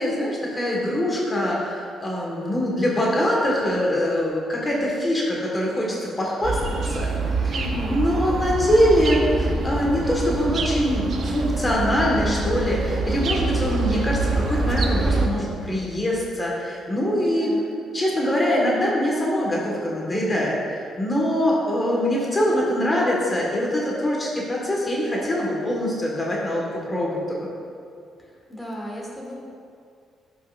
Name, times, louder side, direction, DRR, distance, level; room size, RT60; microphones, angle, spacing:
voice 1, 0.0-7.1 7.4-7.6 7.9-17.5 17.9-26.6 26.9-27.2, equal, 25° left, -4 dB, 1.5 m, -23 dB
sound 1, 6.4-15.3, right 2 dB, 60° right, 0.7 m, -25 dB
voice 2, 7.5-8.1 17.2-17.8 28.2-29.3, equal, ahead, -4 dB, 1.6 m, -35 dB
11.5 x 5.6 x 2.5 m, 2.3 s
cardioid pair, 90°, 0 cm